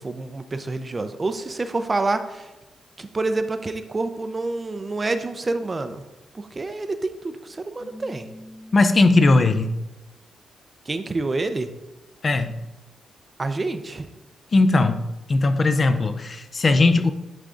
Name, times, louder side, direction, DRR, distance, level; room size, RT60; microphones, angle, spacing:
voice 1, 0.0-2.5 3.0-6.0 6.3-8.3 10.9-11.7 13.4-14.1, right 3 dB, 25° right, 9 dB, 0.4 m, -27 dB
Keyboard (musical), 7.8-9.8, left 1 dB, 80° left, 2.5 m, -44 dB
voice 2, 8.7-9.7 12.2-12.6 14.5-15.0 15.3-17.1, left 3 dB, 35° left, 10 dB, 0.4 m, -18 dB
10.0 x 3.6 x 3.7 m, 1.0 s
cardioid pair, 125°, 0 cm